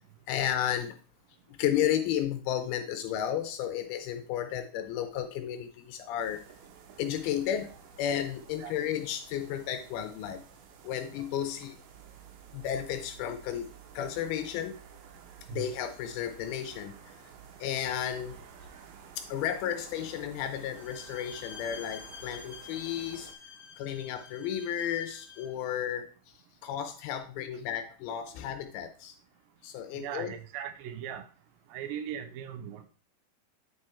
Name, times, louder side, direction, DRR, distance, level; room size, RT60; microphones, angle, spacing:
voice 1, 0.3-1.0 1.5-6.4 7.0-10.5 10.8-11.8 12.5-13.7 13.9-14.8 15.5-16.9 17.6-18.4 19.2-23.3 23.8-29.2 29.6-30.3, left 10 dB, 80° left, 9 dB, 2.3 m, -33 dB
sound 1, 6.2-23.3, right 7 dB, 70° right, 2.8 m, -52 dB
Bowed string instrument, 20.7-25.6, left 6 dB, 10° right, 0.8 m, -48 dB
voice 2, 30.0-31.3 31.7-32.9, right 9 dB, 85° right, 8 dB, 1.9 m, -38 dB
9.4 x 4.8 x 4.3 m, 0.39 s
omnidirectional pair, 4.9 m